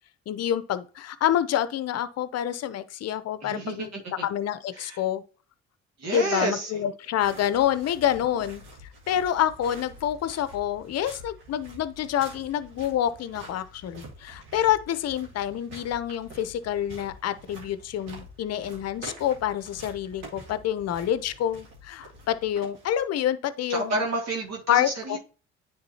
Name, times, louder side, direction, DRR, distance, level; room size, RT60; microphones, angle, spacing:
voice 1, 0.3-3.9 4.2-5.2 6.1-8.6 9.1-24.0 24.7-25.2, left 10 dB, 50° left, 0.7 m, -27 dB
voice 2, 3.4-4.3 4.7-5.0 6.0-6.9 23.7-25.2, right 2 dB, 55° right, 1.8 m, -30 dB
sound 1, 7.2-23.2, right 1 dB, 75° right, 2.3 m, -47 dB
9.6 x 3.8 x 2.8 m
hypercardioid pair, 60°, 32 cm